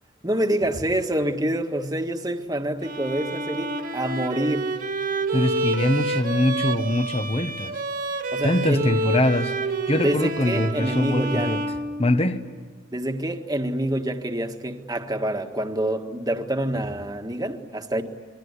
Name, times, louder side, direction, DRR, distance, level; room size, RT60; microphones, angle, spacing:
voice 1, 0.2-4.7 8.3-8.8 10.0-11.5 12.9-18.0, right 1 dB, 20° right, 1.6 m, -26 dB
Bowed string instrument, 2.8-12.5, right 2 dB, 45° right, 2.1 m, -29 dB
voice 2, 5.3-7.7 8.4-11.6 12.0-12.4, left 1 dB, 30° left, 1.1 m, -23 dB
27.0 x 23.0 x 9.7 m
head